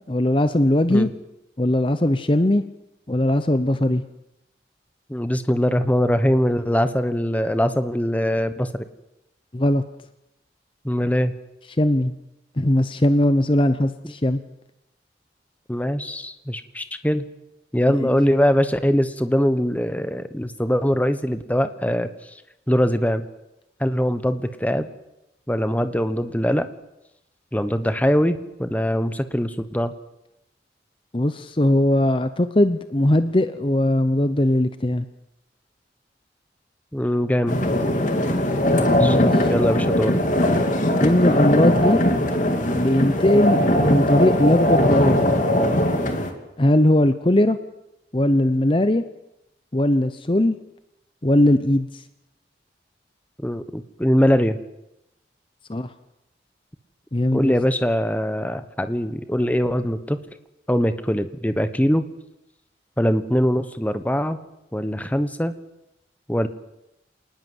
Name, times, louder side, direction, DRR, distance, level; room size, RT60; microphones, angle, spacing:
voice 1, 0.1-1.1 1.6-2.6 3.1-4.0 9.5-9.8 11.8-12.1 12.6-14.4 18.0-18.1 31.1-35.0 39.0-39.5 41.0-42.0 42.7-45.3 46.6-47.6 48.1-49.0 49.7-50.6 51.2-51.9 55.7-55.9 57.1-57.5, left 1 dB, 30° left, 11 dB, 0.8 m, -19 dB
voice 2, 5.1-8.8 10.8-11.3 14.0-14.1 15.7-17.2 17.7-22.1 22.7-23.3 23.8-24.9 25.5-26.7 27.5-29.9 36.9-37.6 39.0-39.2 39.5-40.1 53.4-54.6 57.3-60.2 60.7-62.0 63.0-64.4 64.7-65.5 66.3-66.5, equal, 10° left, 10 dB, 1.1 m, -22 dB
sound 1, 37.5-46.3, left 1 dB, 45° left, 2.8 m, -20 dB
27.0 x 19.5 x 8.0 m, 0.89 s
head